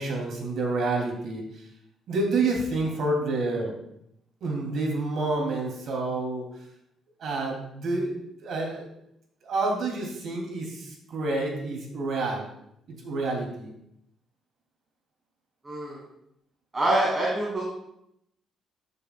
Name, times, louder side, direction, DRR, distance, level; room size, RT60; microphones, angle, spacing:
voice 1, 0.0-1.4 2.1-3.7 4.4-6.5 7.2-8.9 9.4-12.5 12.9-13.7, right 2 dB, 65° right, 0 dB, 2.7 m, -28 dB
voice 2, 15.6-16.0 16.7-17.6, right 1 dB, 25° right, -5 dB, 2.4 m, -25 dB
13.5 x 6.8 x 2.3 m, 0.77 s
cardioid pair, 90°, 0 cm